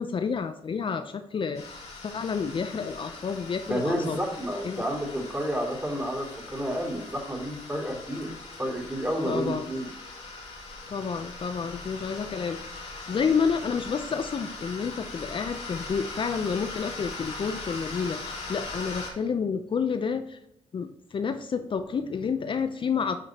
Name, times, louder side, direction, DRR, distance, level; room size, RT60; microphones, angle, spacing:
voice 1, 0.0-1.8 2.0-4.2 4.6-4.8 9.3-9.7 10.9-20.4 20.7-23.2, left 6 dB, 45° left, 8 dB, 0.6 m, -30 dB
sound 1, 1.5-19.1, left 3 dB, 70° left, 2.3 m, -40 dB
voice 2, 3.7-8.3 8.6-9.9, equal, 15° right, 0 dB, 2.9 m, -30 dB
10.5 x 5.0 x 2.9 m, 0.77 s
supercardioid pair, 60°, 12 cm